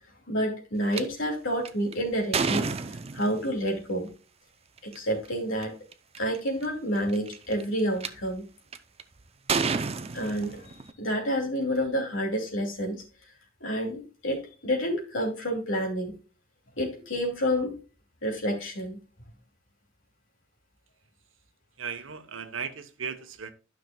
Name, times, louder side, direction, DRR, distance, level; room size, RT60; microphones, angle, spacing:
voice 1, 0.3-2.7 3.1-4.1 4.8-5.7 6.2-8.5 10.1-13.0 13.6-16.1 16.8-17.8 18.2-19.0, equal, 70° left, 0 dB, 2.7 m, -29 dB
sound 1, 0.9-1.0 1.7-3.5 4.8-5.0 5.6-5.7 5.9-6.4 7.1-8.1 8.7-9.0 9.5-10.9, right 5 dB, 30° right, 0.5 m, -29 dB
voice 2, 21.8-23.5, right 6 dB, 70° right, 9 dB, 1.0 m, -36 dB
12.0 x 5.9 x 2.3 m, 0.34 s
head